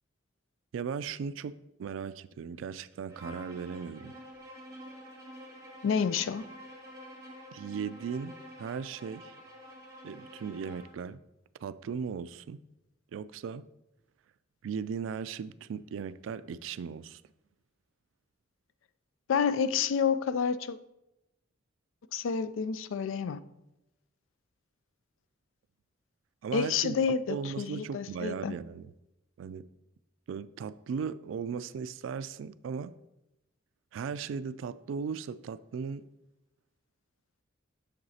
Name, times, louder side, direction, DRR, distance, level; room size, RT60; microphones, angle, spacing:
voice 1, 0.7-4.1 7.5-9.3 10.0-11.2 11.6-12.6 13.1-13.6 14.6-17.2 26.4-28.9 29.4-29.7 30.3-32.9 33.9-36.0, right 6 dB, 80° right, 0.3 m, -37 dB
Bowed string instrument, 3.1-11.0, equal, 15° right, 1.4 m, -48 dB
voice 2, 5.8-6.4 19.3-20.8 22.1-23.4 26.5-28.6, left 6 dB, 85° left, 0.4 m, -29 dB
7.8 x 6.5 x 2.8 m
head